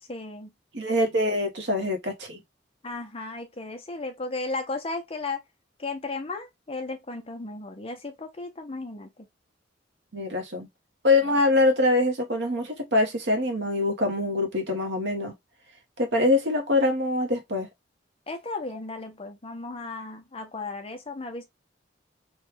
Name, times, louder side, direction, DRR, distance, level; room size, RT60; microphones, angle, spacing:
voice 1, 0.1-0.5 2.8-5.4 5.8-9.1 11.3-11.4 18.3-21.4, left 3 dB, 30° left, 0.7 m, -35 dB
voice 2, 0.7-2.4 10.1-10.7 11.0-15.3 16.0-17.7, left 2 dB, 70° right, 1.0 m, -24 dB
3.2 x 2.3 x 3.2 m
head